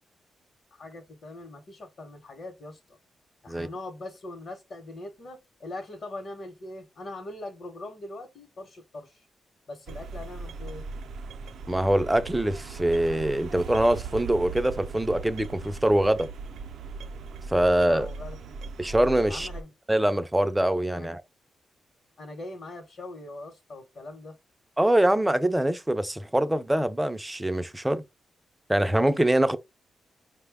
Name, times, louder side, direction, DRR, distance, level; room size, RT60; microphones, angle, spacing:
voice 1, 0.7-3.0 3.4-9.3 9.7-10.9 17.9-18.6 19.3-19.7 20.9-21.2 22.2-24.4, left 2 dB, 50° left, 0.9 m, -41 dB
sound 1, 9.9-19.6, right 4 dB, 75° right, 0.4 m, -39 dB
voice 2, 11.7-16.3 17.5-18.1 18.8-19.5 19.9-21.2 24.8-28.0 28.7-29.6, right 1 dB, 5° right, 0.4 m, -24 dB
5.2 x 2.1 x 3.4 m
wide cardioid pair, 150°, 0 cm